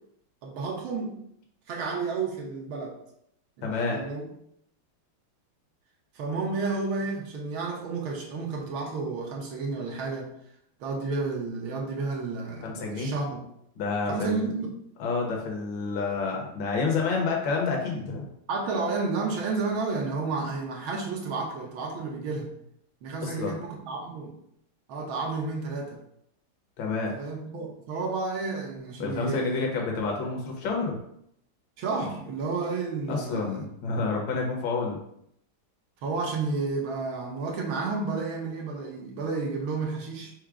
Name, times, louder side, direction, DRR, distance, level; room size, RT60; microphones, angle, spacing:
voice 1, 0.4-1.2 1.7-2.9 3.6-4.2 6.1-10.3 10.8-13.4 14.1-14.8 18.5-22.5 23.0-24.3 24.9-26.0 27.1-29.8 31.8-33.6 36.0-40.3, right 4 dB, 70° right, 0 dB, 1.6 m, -31 dB
voice 2, 3.6-4.0 12.6-13.1 13.8-14.5 15.0-18.3 23.2-23.6 26.8-27.1 29.0-31.0 33.1-35.0, left 4 dB, 65° left, 0 dB, 1.6 m, -29 dB
4.8 x 2.1 x 4.7 m, 0.72 s
omnidirectional pair, 2.4 m